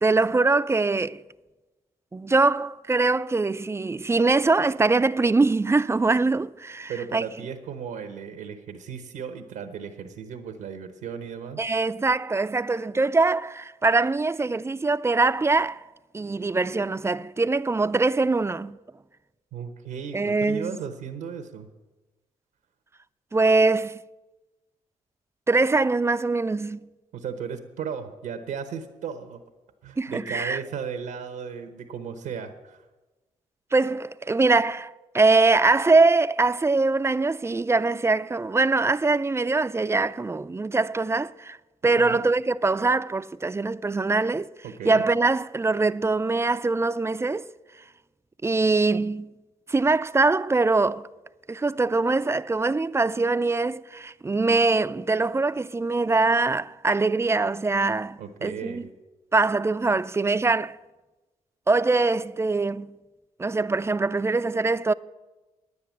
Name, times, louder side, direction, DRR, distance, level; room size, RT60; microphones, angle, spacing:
voice 1, 0.0-1.2 2.1-7.2 11.6-15.8 16.1-18.8 20.1-20.8 23.3-24.0 25.5-26.8 30.0-30.6 33.7-41.6 41.8-44.5 44.8-47.5 48.4-49.3 49.7-51.0 51.5-58.8 59.3-60.8 61.7-62.9 63.4-64.9, right 3 dB, 20° right, 0.4 m, -23 dB
voice 2, 6.9-11.6 19.5-21.7 27.1-29.4 29.8-32.8 42.0-42.2 44.6-45.0 58.2-58.9, right 7 dB, 85° right, 0.9 m, -35 dB
9.9 x 9.5 x 7.3 m
supercardioid pair, 55°, 14 cm